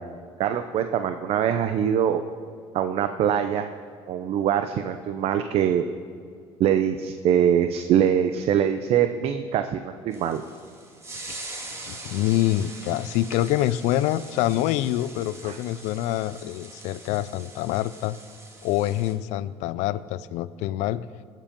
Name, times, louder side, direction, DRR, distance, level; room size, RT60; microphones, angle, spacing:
voice 1, 0.4-2.2 2.7-3.7 4.1-5.8 6.6-10.4 15.4-15.6, right 9 dB, 55° right, 8 dB, 0.6 m, -23 dB
sound 1, 10.1-19.1, right 2 dB, 25° right, 2.0 m, -42 dB
voice 2, 11.8-18.2 18.6-21.1, left 14 dB, 75° left, 16 dB, 0.4 m, -26 dB
18.5 x 7.5 x 5.3 m, 2.2 s
cardioid pair, 105°, 12 cm